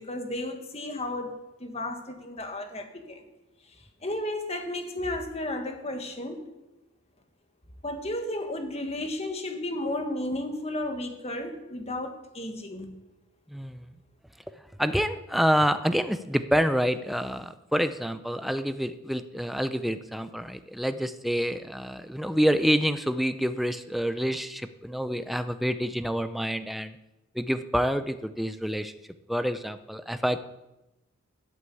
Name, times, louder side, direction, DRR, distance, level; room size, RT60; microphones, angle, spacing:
voice 1, 0.0-3.3 4.0-6.5 7.8-13.0, left 1 dB, 30° left, 5 dB, 1.6 m, -33 dB
voice 2, 13.5-13.9 14.8-27.0 27.3-28.9 29.3-30.4, equal, ahead, 10 dB, 0.6 m, -27 dB
14.0 x 8.1 x 8.4 m, 0.97 s
head